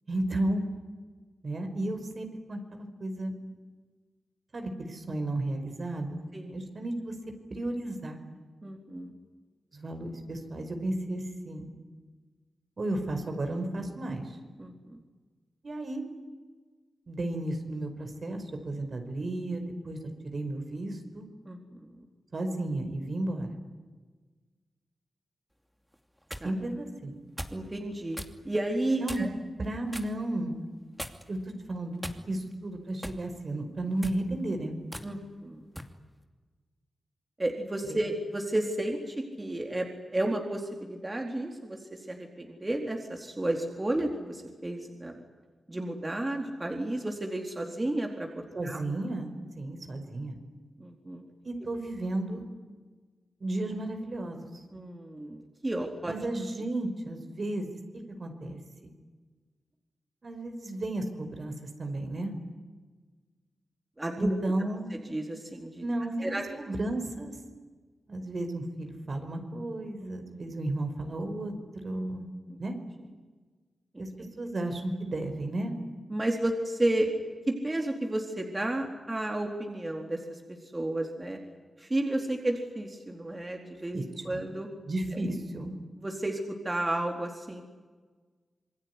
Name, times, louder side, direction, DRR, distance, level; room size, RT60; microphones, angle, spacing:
voice 1, 0.1-0.6 1.4-3.3 4.5-7.1 7.5-8.2 9.7-11.7 12.8-14.4 15.6-16.0 17.1-21.3 22.3-23.6 26.4-27.2 29.0-29.3 29.6-30.5 31.3-31.4 31.7-34.8 37.8-38.0 48.6-50.4 51.4-52.4 53.4-54.5 56.1-58.9 60.2-62.3 64.2-64.9 65.8-67.4 68.1-71.5 71.8-72.3 72.6-72.8 74.0-74.1 74.4-75.7 83.9-84.4 84.8-85.7, right 1 dB, 55° right, 5 dB, 5.4 m, -33 dB
voice 2, 8.6-9.1 14.6-15.0 21.5-22.0 26.4-26.5 27.5-28.2 28.4-29.3 35.0-35.7 37.4-45.2 45.7-48.8 50.8-51.2 54.7-56.1 64.0-64.4 64.9-65.8 66.2-66.4 72.5-72.6 73.9-74.3 76.1-80.4 80.7-81.4 81.8-84.0 84.2-84.7 86.0-87.6, right 1 dB, 25° right, 2 dB, 4.1 m, -32 dB
sound 1, 25.9-26.5 27.4-27.6 28.1-28.4 29.1-29.4 29.9-30.2 31.0-31.4 32.0-32.5 33.0-33.3 33.9-34.2 34.9-35.1 35.8-36.0, equal, 5° right, 2.7 m, -40 dB
27.5 x 21.0 x 9.9 m, 1.4 s
cardioid pair, 55°, 0 cm